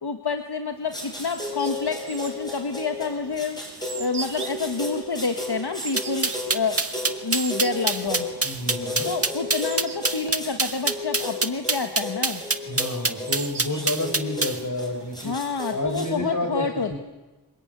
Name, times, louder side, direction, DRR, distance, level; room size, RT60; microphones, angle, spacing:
voice 1, 0.0-3.6 4.0-6.8 7.2-8.3 9.0-12.4 15.2-17.0, left 4 dB, 70° left, 6 dB, 1.6 m, -28 dB
sound 1, 0.7-15.7, right 5 dB, 80° right, 1.5 m, -43 dB
sound 2, 0.9-16.1, left 2 dB, 10° left, 7.5 m, -34 dB
sound 3, 6.0-14.6, right 3 dB, 35° right, 1.6 m, -24 dB
voice 2, 8.4-9.1 12.6-15.3 15.7-17.0, left 1 dB, 45° left, 5 dB, 6.2 m, -30 dB
25.0 x 20.5 x 9.6 m, 1.1 s
wide cardioid pair, 70°, 40 cm